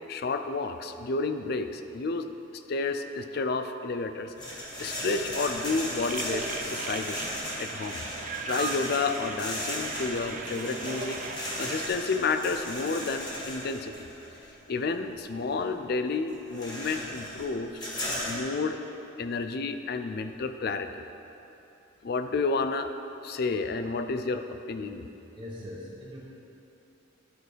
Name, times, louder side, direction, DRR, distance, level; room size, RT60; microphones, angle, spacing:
voice 1, 0.1-2.3 2.7-4.3 4.8-7.2 7.6-8.0 8.4-11.2 11.6-13.9 14.7-17.7 18.2-18.8 19.2-21.0 22.0-22.9 23.2-25.1, left 4 dB, 50° left, 9 dB, 0.4 m, -30 dB
sound 1, 4.4-14.5 15.1-15.2 15.6-15.8 16.1-18.4, equal, 20° left, 1.8 m, -36 dB
sound 2, 5.9-11.9, right 5 dB, 40° right, 0.4 m, -38 dB
voice 2, 25.3-26.2, left 1 dB, 25° right, -8 dB, 0.9 m, -41 dB
11.5 x 4.6 x 4.9 m, 2.9 s
head